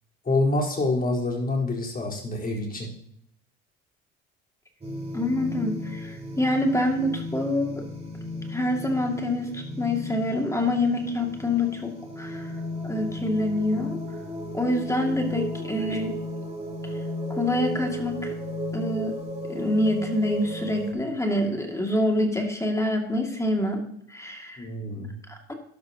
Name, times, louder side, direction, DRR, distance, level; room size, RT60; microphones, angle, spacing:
voice 1, 0.2-2.9 24.6-25.1, left 2 dB, 25° left, -3 dB, 4.2 m, -26 dB
sound 1, 4.8-20.9, left 1 dB, 20° right, 3.1 m, -34 dB
voice 2, 5.1-7.8 8.5-14.0 14.5-16.2 16.8-16.9 17.3-18.3 18.7-19.2 19.5-24.7 25.3-25.5, left 1 dB, 10° left, 2 dB, 2.3 m, -26 dB
12.5 x 12.0 x 2.9 m, 0.68 s
supercardioid pair, 75°, 31 cm